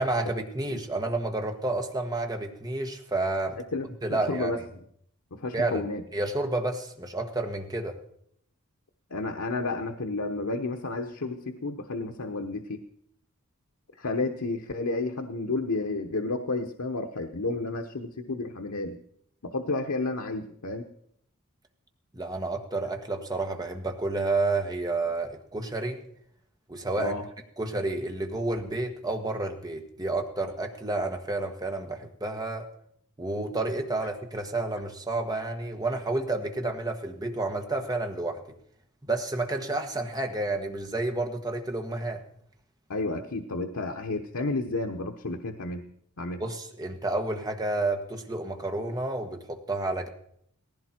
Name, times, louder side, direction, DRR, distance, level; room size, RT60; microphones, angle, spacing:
voice 1, 0.0-3.6 4.0-4.5 5.5-5.8 6.1-8.0 22.1-26.0 26.7-27.1 27.6-32.7 33.2-38.4 39.0-42.2 46.4-50.1, right 2 dB, 20° right, 4 dB, 1.5 m, -30 dB
voice 2, 3.7-4.6 5.3-6.0 9.1-12.8 14.0-19.0 19.4-20.9 27.0-27.3 42.9-45.8 46.2-46.4, left 3 dB, 85° left, 4 dB, 1.0 m, -31 dB
18.0 x 15.5 x 4.5 m, 0.70 s
head